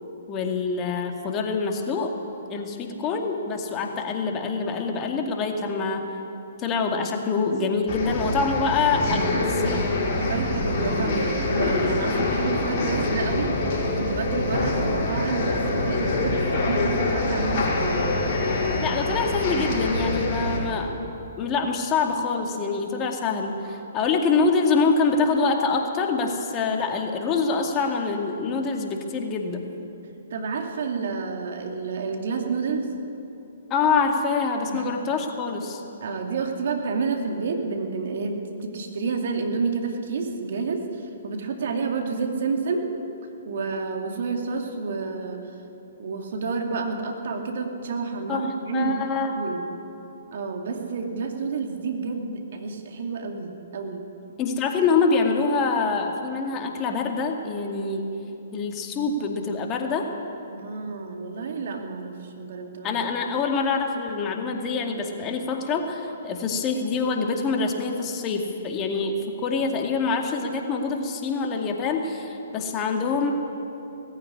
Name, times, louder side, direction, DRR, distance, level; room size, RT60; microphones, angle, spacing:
voice 1, 0.3-2.2 2.5-6.1 6.6-9.9 18.8-21.0 21.4-29.7 33.7-35.8 48.3-48.5 48.7-49.3 54.4-58.1 58.5-60.1 62.8-73.3, left 4 dB, 25° left, 3 dB, 2.2 m, -25 dB
sound 1, 7.9-20.6, left 2 dB, 40° left, 5.5 m, -25 dB
voice 2, 10.1-18.0 30.3-32.9 34.7-34.9 36.0-42.9 43.5-45.5 46.0-48.9 49.3-49.7 50.3-54.0 60.5-63.0, right 4 dB, 60° right, 3 dB, 2.6 m, -29 dB
19.0 x 15.0 x 9.8 m, 2.9 s
figure-of-eight pair, 125°, 0 cm